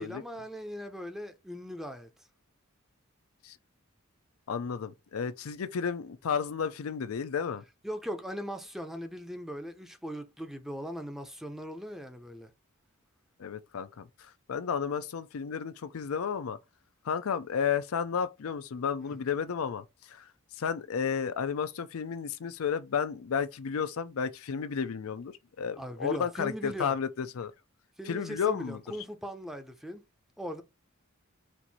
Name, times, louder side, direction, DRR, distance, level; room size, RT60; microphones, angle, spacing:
voice 1, 0.0-2.1 7.8-12.5 25.8-26.9 28.0-30.0 30.4-30.6, equal, ahead, 0.6 m, -39 dB
voice 2, 4.5-7.6 13.4-16.6 17.0-20.2 20.6-27.5 28.1-28.8, left 7 dB, 75° left, 0.5 m, -32 dB
4.5 x 2.6 x 4.0 m
head